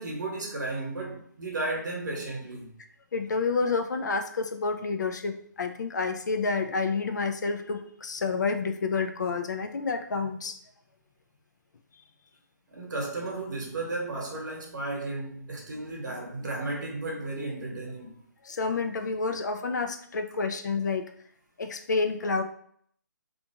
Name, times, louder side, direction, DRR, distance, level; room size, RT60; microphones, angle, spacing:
voice 1, 0.0-2.7 12.7-18.2, right 2 dB, 70° right, 1.0 m, -34 dB
voice 2, 3.1-10.6 18.4-21.1 21.6-22.4, left 4 dB, 65° left, 0.4 m, -29 dB
2.5 x 2.3 x 2.8 m
hypercardioid pair, 165°, 10 cm